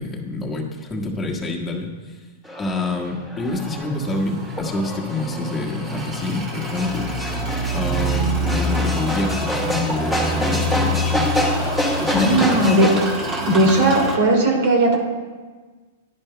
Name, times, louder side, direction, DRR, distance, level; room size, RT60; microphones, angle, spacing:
voice 1, 0.0-2.2 2.6-7.1 7.7-11.3 12.0-12.6, left 2 dB, 15° left, -2 dB, 1.6 m, -27 dB
sound 1, 2.4-13.0, equal, 5° right, 2.0 m, -27 dB
sound 2, 3.6-14.2, right 1 dB, 25° right, 2.1 m, -27 dB
voice 2, 12.1-12.9 13.4-15.0, right 1 dB, 60° right, 0 dB, 2.5 m, -17 dB
10.5 x 10.5 x 2.2 m, 1.4 s
hypercardioid pair, 120°, 0 cm